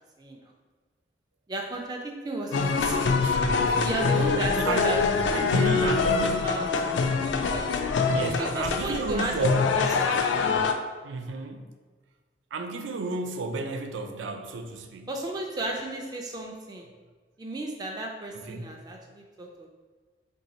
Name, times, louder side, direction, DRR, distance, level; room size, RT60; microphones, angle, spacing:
voice 1, 1.5-3.2 3.8-6.1 6.4-6.6 7.4-7.7 8.4-9.3 9.8-10.5 15.1-16.9 17.4-19.7, right 2 dB, 20° right, 1 dB, 0.3 m, -34 dB
sound 1, 2.5-10.7, left 4 dB, 80° left, 0.3 m, -25 dB
voice 2, 3.2-4.3 4.5-6.7 8.1-9.7 10.1-10.3 11.0-11.7 12.5-15.1 18.3-18.7, right 3 dB, 90° right, 5 dB, 0.4 m, -33 dB
3.0 x 2.7 x 4.0 m, 1.4 s
head